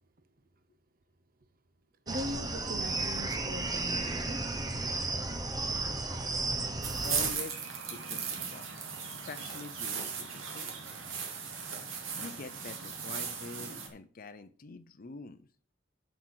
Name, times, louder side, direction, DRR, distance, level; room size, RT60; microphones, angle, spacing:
sound 1, 2.1-7.3, right 2 dB, 20° right, 0.9 m, -33 dB
voice 1, 2.1-4.4, equal, 45° right, 0.7 m, -40 dB
sound 2, 6.8-13.9, right 6 dB, 85° right, 2.2 m, -37 dB
voice 2, 7.0-8.7 9.0-11.0 12.1-15.5, left 3 dB, 45° left, 0.6 m, -46 dB
7.9 x 5.9 x 6.5 m
head